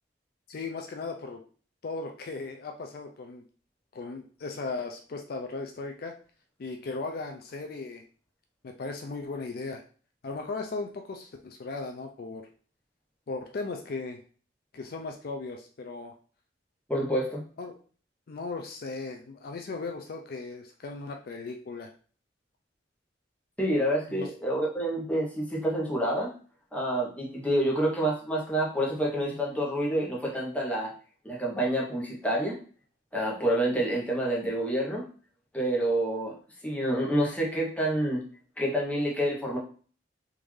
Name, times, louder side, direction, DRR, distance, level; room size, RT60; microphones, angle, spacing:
voice 1, 0.5-1.4 1.8-3.4 3.9-6.1 6.6-8.0 8.6-9.8 10.2-12.5 13.3-14.2 14.7-16.1 17.6-17.7 18.3-21.9 24.1-24.3, left 3 dB, 55° left, 4 dB, 0.4 m, -37 dB
voice 2, 16.9-17.4 23.6-26.3 26.7-30.9 31.2-32.6 33.1-35.0 35.5-36.3 36.6-38.2 38.6-39.6, right 1 dB, 10° left, -3 dB, 0.9 m, -28 dB
3.5 x 2.6 x 3.2 m, 0.41 s
head